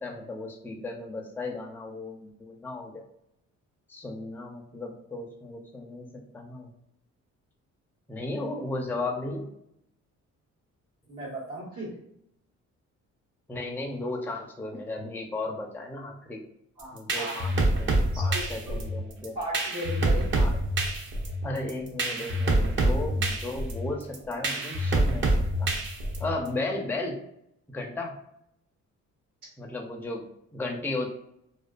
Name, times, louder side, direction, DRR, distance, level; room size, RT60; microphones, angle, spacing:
voice 1, 0.0-3.0 3.9-6.7 8.1-9.5 13.5-16.4 16.9-19.4 20.3-20.6 21.4-25.7 26.2-27.2 27.7-28.2 29.6-30.2 30.5-31.1, left 2 dB, 5° left, 1 dB, 0.4 m, -35 dB
voice 2, 11.1-11.9 16.8-17.4 18.1-18.8 19.3-20.5 26.3-26.4, right 1 dB, 80° right, -9 dB, 1.2 m, -36 dB
sound 1, 16.8-26.5, right 1 dB, 40° right, 0.6 m, -26 dB
2.5 x 2.3 x 2.2 m, 0.75 s
cardioid pair, 90°, 30 cm